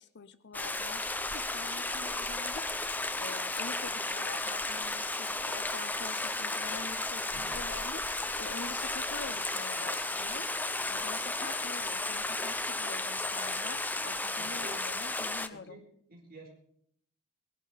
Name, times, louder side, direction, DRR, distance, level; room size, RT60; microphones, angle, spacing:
voice 1, 0.0-10.5 10.9-15.8, left 4 dB, 50° left, 13 dB, 0.8 m, -46 dB
Stream, 0.5-15.5, left 2 dB, 10° left, 0.6 m, -34 dB
voice 2, 14.4-14.8 15.5-15.8 16.1-16.5, right 2 dB, 45° right, 0 dB, 4.4 m, -51 dB
19.0 x 11.0 x 5.1 m, 0.68 s
head